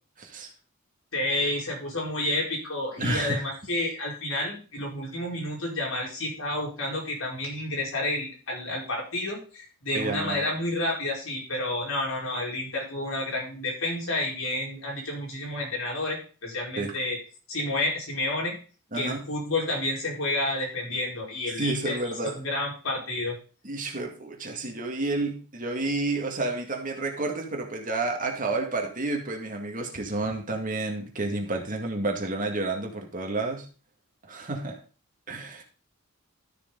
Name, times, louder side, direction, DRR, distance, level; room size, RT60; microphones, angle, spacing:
voice 1, 0.2-0.5 3.0-3.5 9.9-10.4 16.8-16.9 18.9-19.2 21.6-22.4 23.6-33.7 34.3-34.8 35.3-35.6, right 2 dB, 40° right, 2 dB, 2.1 m, -30 dB
voice 2, 1.1-17.2 17.5-18.6 18.9-22.0 22.2-23.4, left 1 dB, 85° left, -3 dB, 4.9 m, -30 dB
13.0 x 6.6 x 4.0 m, 0.37 s
head